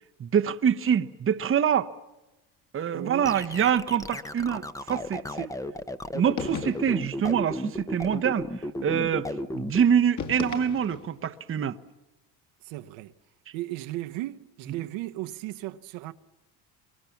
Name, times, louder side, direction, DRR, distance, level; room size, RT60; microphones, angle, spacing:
voice 1, 0.2-1.9 2.7-5.5 6.1-11.8, right 8 dB, 25° right, 1.0 m, -25 dB
voice 2, 2.9-3.3 12.6-13.1 13.5-16.1, right 16 dB, 75° right, 1.2 m, -36 dB
sound 1, 3.2-9.8, left 1 dB, 5° left, 0.9 m, -34 dB
sound 2, 6.4-7.1 10.2-11.2, left 6 dB, 40° left, 2.4 m, -35 dB
28.0 x 23.5 x 7.1 m
supercardioid pair, 110°, 46 cm